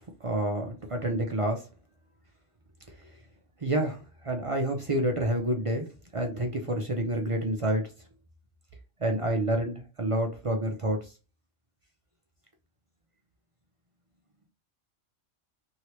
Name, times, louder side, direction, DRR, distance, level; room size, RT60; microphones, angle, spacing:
voice 1, 0.0-1.7 3.6-5.9 6.1-7.9 9.0-11.1, right 1 dB, 45° right, 2 dB, 0.4 m, -28 dB
3.1 x 2.7 x 2.9 m, 0.32 s
omnidirectional pair, 1.2 m